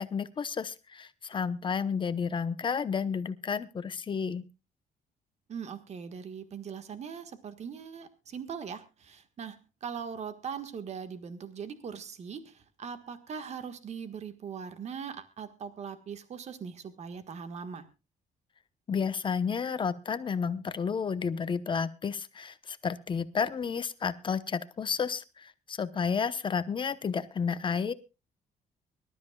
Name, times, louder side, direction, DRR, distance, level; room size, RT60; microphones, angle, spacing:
voice 1, 0.0-4.5 18.9-27.9, left 6 dB, 30° left, 12 dB, 0.9 m, -31 dB
voice 2, 5.5-17.8, right 6 dB, 40° right, 9 dB, 1.5 m, -40 dB
24.5 x 13.0 x 2.3 m, 0.29 s
cardioid pair, 155°, 16 cm